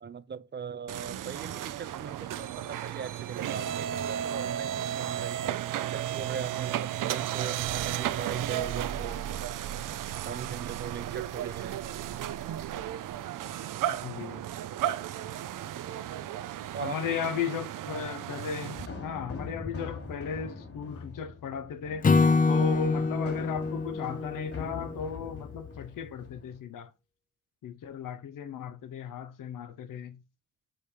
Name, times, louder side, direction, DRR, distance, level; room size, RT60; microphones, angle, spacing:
voice 1, 0.0-5.5 5.8-9.2 10.2-11.9 16.7-17.3, right 6 dB, 35° right, 0.5 m, -40 dB
sound 1, 0.9-18.9, right 11 dB, 80° right, 0.5 m, -34 dB
voice 2, 13.9-14.4 16.8-22.1 22.5-26.9 27.6-30.2, left 7 dB, 85° left, 0.7 m, -36 dB
sound 2, 18.7-26.6, left 4 dB, 45° left, 2.8 m, -43 dB
Acoustic guitar / Strum, 22.0-25.4, left 4 dB, 25° left, 0.5 m, -26 dB
5.1 x 4.3 x 5.0 m
cardioid pair, 90°, 32 cm